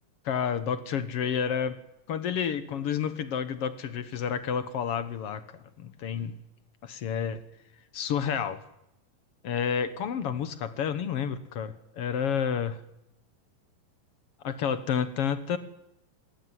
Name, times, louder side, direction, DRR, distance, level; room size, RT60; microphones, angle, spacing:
voice 1, 0.3-1.8 2.1-6.4 6.8-7.4 7.9-8.6 9.4-12.8 14.4-15.6, left 7 dB, 60° left, 12 dB, 1.8 m, -30 dB
21.0 x 19.0 x 9.7 m, 0.86 s
omnidirectional pair, 3.8 m